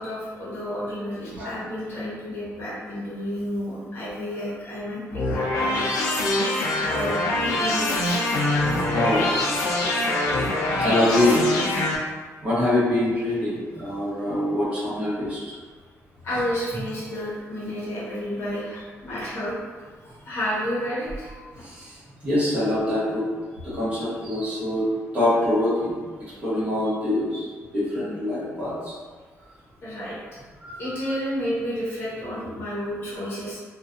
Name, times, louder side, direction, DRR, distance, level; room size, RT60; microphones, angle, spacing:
voice 1, 0.0-6.1 6.9-7.2 7.5-8.2 16.2-21.7 26.8-26.9 29.8-30.2 30.8-33.6, equal, 45° left, -8 dB, 0.8 m, -31 dB
sound 1, 5.1-12.0, left 2 dB, 90° left, 0.4 m, -24 dB
voice 2, 8.9-9.5 10.8-11.5 12.4-15.4 19.1-19.2 21.6-21.9 22.2-23.2 23.7-24.9 25.1-26.0 26.4-27.5 27.7-28.9 30.6-30.8 31.1-31.2, left 1 dB, 25° right, -11 dB, 1.1 m, -24 dB
2.4 x 2.2 x 2.5 m, 1.5 s
wide cardioid pair, 175°, 5 cm